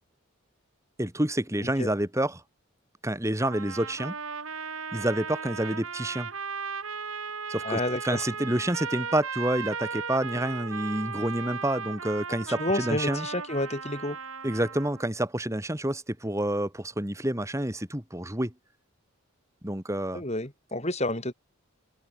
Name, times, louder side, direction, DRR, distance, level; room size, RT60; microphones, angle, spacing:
voice 1, 1.0-2.4 3.0-4.2 4.9-6.3 7.5-7.8 8.1-13.3 14.4-18.5 19.6-20.2, right 1 dB, 15° right, 2.1 m, -28 dB
sound 1, 3.4-15.1, right 5 dB, 75° right, 3.7 m, -36 dB
voice 2, 7.6-8.3 12.6-14.2 20.1-21.3, left 1 dB, 30° left, 5.3 m, -30 dB
open air
head